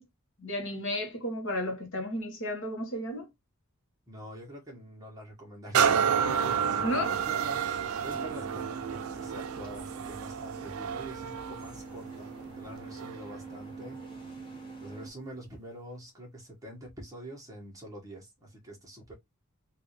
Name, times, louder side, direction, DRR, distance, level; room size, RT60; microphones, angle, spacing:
voice 1, 0.4-3.3 6.8-7.2, left 1 dB, 60° left, 1.4 m, -33 dB
voice 2, 4.1-7.6 8.0-14.3 14.8-19.1, right 1 dB, 15° right, 1.6 m, -45 dB
sound 1, 5.7-13.3 13.9-14.0, right 7 dB, 75° right, 0.5 m, -30 dB
sound 2, 8.1-15.1, right 3 dB, 25° left, 1.4 m, -44 dB
3.7 x 2.8 x 3.2 m
head